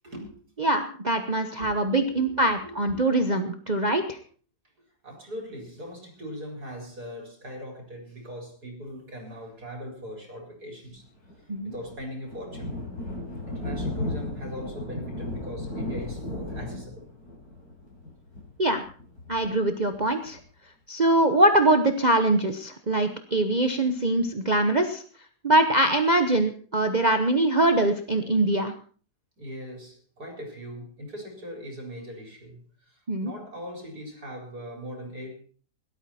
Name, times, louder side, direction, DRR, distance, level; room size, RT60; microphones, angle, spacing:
voice 1, 0.6-4.2 11.5-11.7 18.6-18.8 19.3-20.4 20.9-25.0 25.4-28.7 33.1-33.3, right 1 dB, 30° right, 6 dB, 1.0 m, -23 dB
voice 2, 1.6-3.0 5.0-11.0 11.6-12.8 13.5-17.1 29.4-35.4, equal, 70° right, 2 dB, 5.1 m, -40 dB
Thunder, 11.2-20.4, left 1 dB, 65° left, 6.9 m, -35 dB
17.5 x 12.5 x 4.3 m, 0.41 s
omnidirectional pair, 1.7 m